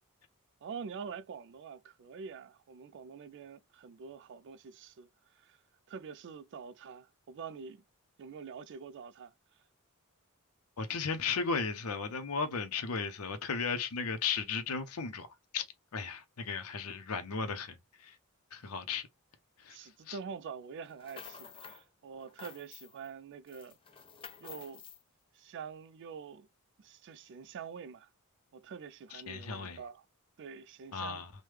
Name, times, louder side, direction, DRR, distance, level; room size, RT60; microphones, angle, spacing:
voice 1, 0.6-5.6 5.9-7.8 8.2-9.3 19.7-23.8 24.4-24.8 25.3-26.5 26.8-28.1 28.5-30.1 30.4-31.3, right 6 dB, 55° right, 0.3 m, -46 dB
voice 2, 10.8-15.3 15.5-15.6 15.9-18.2 18.5-19.1 19.6-19.8 20.1-20.2 29.1-29.8 30.9-31.3, left 5 dB, 75° left, 0.6 m, -35 dB
sound 1, 20.8-21.8 22.2-23.1 23.5-25.0, left 7 dB, 25° left, 0.4 m, -50 dB
3.2 x 2.1 x 3.1 m
head